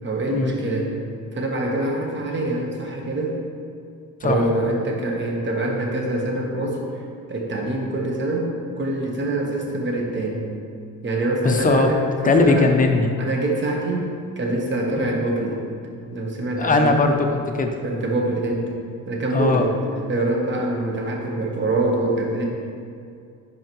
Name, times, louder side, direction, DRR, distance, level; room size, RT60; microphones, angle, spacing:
voice 1, 0.0-0.9 1.3-3.4 4.2-6.8 7.3-8.5 8.8-10.5 11.0-12.7 13.2-15.6 16.1-17.0 17.8-18.7 19.1-19.8 20.1-22.4, right 2 dB, 35° right, 0 dB, 1.2 m, -25 dB
voice 2, 11.4-11.9 12.2-13.1 14.9-15.0 16.6-17.7 19.3-19.7, left 3 dB, 25° left, 4 dB, 0.6 m, -19 dB
10.5 x 5.6 x 3.1 m, 2.3 s
cardioid pair, 140°, 33 cm